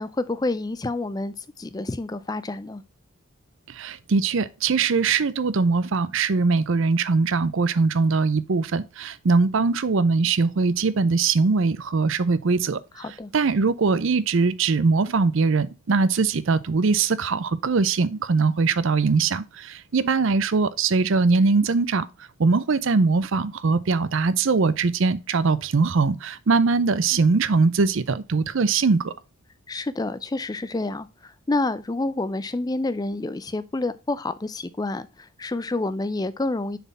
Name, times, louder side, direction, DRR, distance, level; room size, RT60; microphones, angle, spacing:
voice 1, 0.0-2.8 13.0-13.3 29.7-36.8, left 2 dB, 15° left, 0.4 m, -28 dB
voice 2, 3.8-12.8 13.3-22.1 22.4-29.1, right 4 dB, 60° right, 0.5 m, -21 dB
6.8 x 4.3 x 4.0 m
head